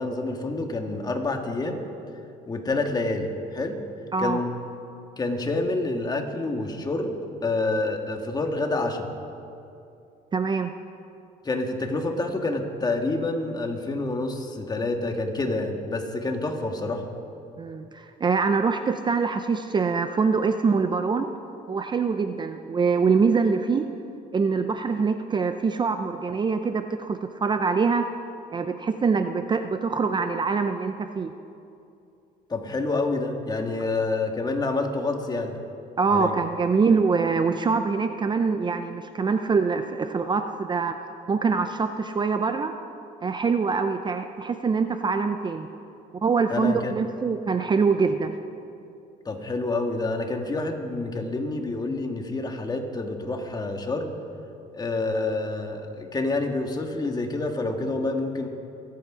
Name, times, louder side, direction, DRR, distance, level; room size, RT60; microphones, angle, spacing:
voice 1, 0.0-1.8 2.5-3.8 4.2-4.5 5.2-9.1 11.4-17.0 32.5-35.6 36.1-36.3 46.5-46.9 49.2-54.2 54.7-58.5, left 2 dB, 25° left, 3 dB, 1.6 m, -28 dB
voice 2, 10.3-10.7 17.6-21.3 21.7-23.9 24.3-28.0 28.5-31.3 36.0-41.0 41.3-42.7 43.2-45.7 46.2-48.3, right 5 dB, 25° right, 8 dB, 0.5 m, -24 dB
24.5 x 8.5 x 5.0 m, 2.6 s
cardioid pair, 110°, 17 cm